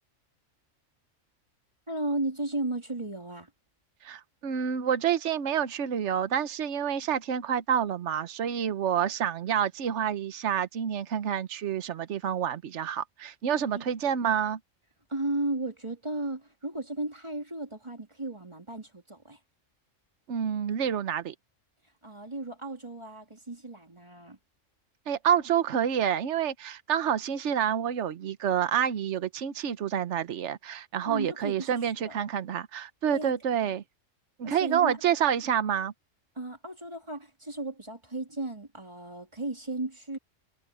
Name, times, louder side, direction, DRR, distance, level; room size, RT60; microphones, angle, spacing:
voice 1, 1.9-3.5 13.7-13.9 15.1-19.4 22.0-24.4 31.1-32.1 33.1-33.3 33.6-33.7 34.4-35.0 36.3-40.2, right 2 dB, 20° right, 3.0 m, -35 dB
voice 2, 4.0-14.6 20.3-21.3 25.1-33.8 34.4-35.9, right 9 dB, 65° right, 1.2 m, -28 dB
omnidirectional pair, 1.3 m